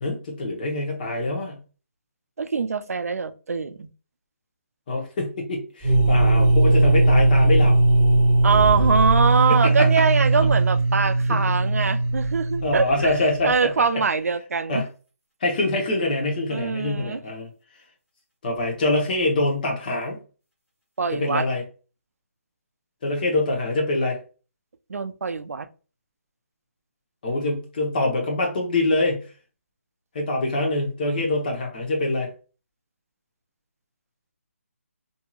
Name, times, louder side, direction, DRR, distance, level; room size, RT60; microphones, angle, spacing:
voice 1, 0.0-1.6 4.9-7.8 9.5-9.9 11.3-11.6 12.6-14.0 14.7-14.9 15.4-17.5 18.4-20.2 21.1-21.6 23.0-24.2 27.2-29.3 30.1-32.3, left 2 dB, 35° left, 0.9 m, -25 dB
voice 2, 2.4-3.9 8.4-13.1 13.4-14.8 16.5-17.2 21.0-21.4 24.9-25.7, right 5 dB, 90° right, 0.3 m, -23 dB
sound 1, 5.8-13.5, right 2 dB, 15° left, 1.5 m, -19 dB
2.8 x 2.7 x 2.3 m
hypercardioid pair, 165°, 8 cm